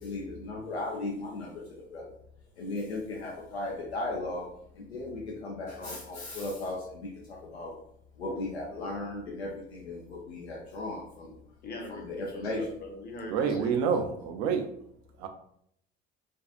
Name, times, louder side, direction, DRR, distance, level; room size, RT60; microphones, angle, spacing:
voice 1, 0.0-2.1 2.6-4.5 4.8-7.7 8.2-11.3 12.0-12.6, left 2 dB, 85° left, -3 dB, 0.5 m, -36 dB
voice 2, 11.6-13.9, left 2 dB, 30° left, 2 dB, 0.7 m, -42 dB
voice 3, 13.3-14.6 15.2-15.3, right 6 dB, 55° right, 5 dB, 0.5 m, -27 dB
2.5 x 2.3 x 2.4 m, 0.70 s
figure-of-eight pair, 60°, 31 cm